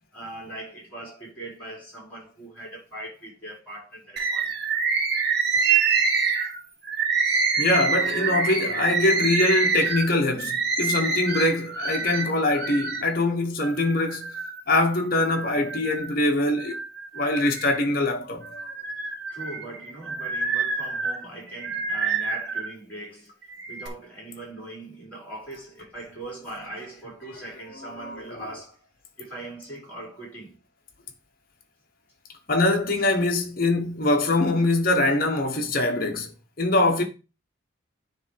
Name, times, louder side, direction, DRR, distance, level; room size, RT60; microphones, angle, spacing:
voice 1, 0.1-4.5 19.3-23.3 23.7-28.8 29.2-30.6, right 1 dB, 10° left, 5.0 m, -40 dB
Bird, 4.2-13.1 13.6-14.6 15.1-16.1 16.6-17.9 18.4-22.7 23.4-23.9, right 5 dB, 55° right, 1.3 m, -26 dB
voice 2, 7.6-14.3 14.7-16.8 17.1-18.7 27.8-28.3 32.5-36.3 36.6-37.0, left 2 dB, 45° left, 1.4 m, -23 dB
9.7 x 3.5 x 4.7 m
head